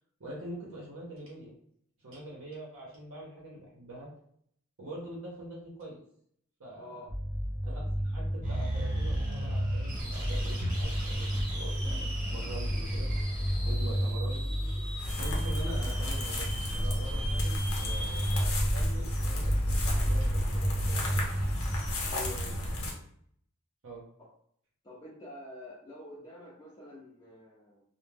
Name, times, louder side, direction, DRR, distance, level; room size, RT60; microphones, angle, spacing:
voice 1, 0.2-1.5 2.0-4.1 4.8-6.0 6.6-7.1 7.6-13.1 13.6-14.4 15.2-21.2 23.8-24.0, right 1 dB, 60° right, -3 dB, 0.7 m, -44 dB
sound 1, 7.1-21.9, equal, 15° right, 0.7 m, -32 dB
sound 2, 8.4-18.4, equal, 40° right, 0.9 m, -38 dB
sound 3, 15.0-22.9, equal, 70° left, 0.7 m, -33 dB
voice 2, 22.1-22.7 24.8-27.8, left 2 dB, 20° left, -8 dB, 0.5 m, -47 dB
2.2 x 2.0 x 3.2 m, 0.66 s
head